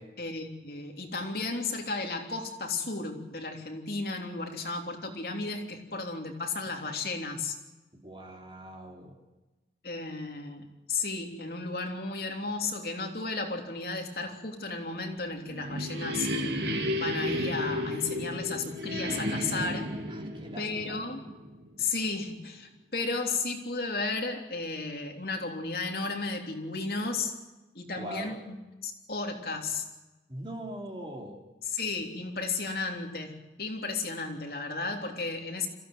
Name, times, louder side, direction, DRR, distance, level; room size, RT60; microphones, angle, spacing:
voice 1, 0.2-7.5 9.8-16.7 16.9-19.9 20.6-21.2 21.8-27.3 27.7-28.6 28.8-29.8 31.7-35.7, left 3 dB, 60° left, 2 dB, 3.3 m, -34 dB
voice 2, 7.9-9.2 20.1-21.0 27.9-28.4 30.3-31.4, right 1 dB, 30° right, 2 dB, 3.0 m, -42 dB
sound 1, 15.1-21.8, left 1 dB, 75° right, 2.8 m, -33 dB
26.0 x 15.5 x 9.5 m, 1.1 s
head